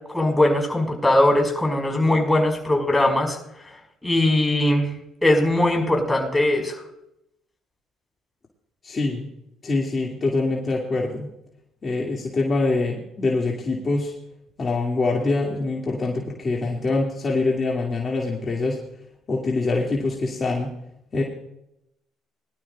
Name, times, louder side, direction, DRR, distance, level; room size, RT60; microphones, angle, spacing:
voice 1, 0.1-3.4 3.6-4.9 5.2-6.8, left 1 dB, 10° left, 1 dB, 5.4 m, -20 dB
voice 2, 8.8-9.3 9.6-11.3 11.8-14.1 14.6-18.8 19.3-20.7 21.1-21.2, left 3 dB, 35° left, -2 dB, 2.5 m, -24 dB
22.0 x 12.0 x 2.4 m, 0.81 s
supercardioid pair, 80°, 0 cm